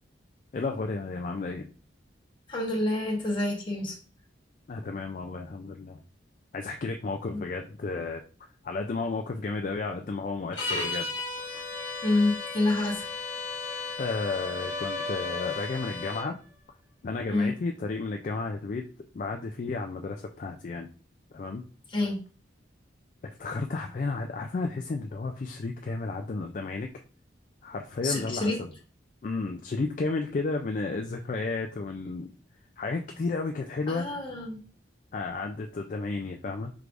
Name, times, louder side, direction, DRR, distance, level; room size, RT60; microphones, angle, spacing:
voice 1, 0.5-1.7 4.7-6.0 6.5-8.2 8.6-11.1 11.5-11.6 14.0-16.4 17.0-18.8 19.1-20.9 21.3-21.6 23.4-26.9 27.6-28.7 29.2-32.3 32.8-34.2 35.1-36.7, left 3 dB, 40° left, 3 dB, 0.3 m, -32 dB
voice 2, 2.5-3.9 7.3-7.4 12.0-13.1 17.3-17.5 21.9-22.2 28.0-28.6 33.9-34.6, left 2 dB, 25° left, -2 dB, 1.1 m, -27 dB
sound 1, 10.5-16.3, left 3 dB, 70° left, 1.1 m, -36 dB
sound 2, 11.4-16.3, left 2 dB, 15° right, 0.5 m, -39 dB
4.7 x 3.3 x 2.5 m, 0.37 s
head